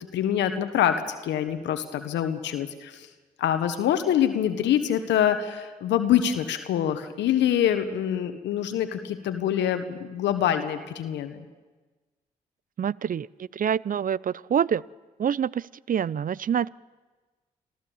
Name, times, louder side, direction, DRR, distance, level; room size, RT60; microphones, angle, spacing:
voice 1, 0.1-3.1 3.4-11.4, left 10 dB, 80° left, 8 dB, 1.3 m, -25 dB
voice 2, 12.8-13.3 13.5-14.8 15.2-16.7, right 8 dB, 50° right, 23 dB, 0.5 m, -26 dB
27.0 x 15.0 x 7.2 m, 1.3 s
hypercardioid pair, 40°, 19 cm